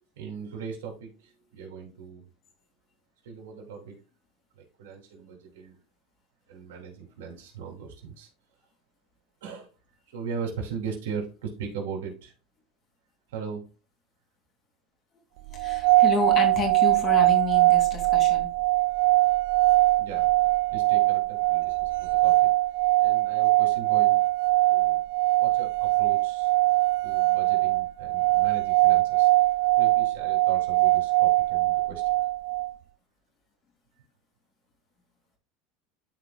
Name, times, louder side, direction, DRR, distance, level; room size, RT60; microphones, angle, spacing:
voice 1, 0.2-2.3 3.2-4.0 4.5-5.8 6.5-8.3 9.4-9.7 10.1-12.3 13.3-13.6 20.0-22.5 23.0-24.2 24.7-25.0 25.4-26.5 27.0-29.3 29.7-32.2, right 6 dB, 90° right, 1 dB, 3.0 m, -39 dB
voice 2, 15.5-18.5, left 4 dB, 40° left, 3 dB, 2.6 m, -30 dB
sound 1, 15.6-32.7, right 18 dB, 70° right, 0.4 m, -22 dB
12.5 x 4.8 x 2.3 m, 0.33 s
supercardioid pair, 125°, 0 cm